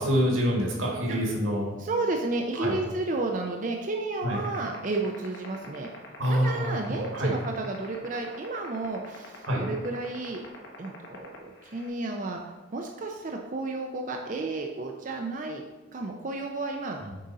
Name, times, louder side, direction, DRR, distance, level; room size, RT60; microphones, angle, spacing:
voice 1, 0.0-1.7 2.6-2.8 4.2-4.4 6.2-7.3 9.4-9.7 17.1-17.2, equal, 75° right, -1 dB, 1.8 m, -26 dB
voice 2, 1.8-5.9 6.3-10.4 10.8-12.4 12.7-15.6 15.9-17.0, right 3 dB, 40° right, 2 dB, 0.5 m, -32 dB
sound 1, 4.3-11.9, left 5 dB, 60° left, 1.2 m, -43 dB
7.6 x 5.0 x 4.1 m, 1.2 s
head